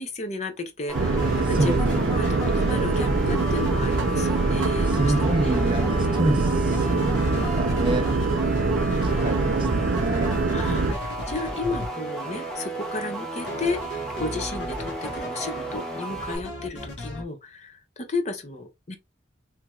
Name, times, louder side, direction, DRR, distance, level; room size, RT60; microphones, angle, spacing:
voice 1, 0.0-5.6 7.3-7.5 10.5-19.0, left 3 dB, 35° left, 0.6 m, -33 dB
sound 1, 0.9-16.4, right 2 dB, 5° left, 0.9 m, -34 dB
sound 2, 0.9-10.9, right 3 dB, 90° right, 0.6 m, -24 dB
sound 3, 1.2-2.0 2.2-4.5 4.9-6.4 6.7-11.9 13.5-15.8 16.1-17.2, equal, 65° left, 1.1 m, -36 dB
voice 2, 1.6-2.4 4.9-8.1 9.0-10.4, right 1 dB, 25° right, 0.5 m, -28 dB
3.3 x 3.0 x 2.3 m
head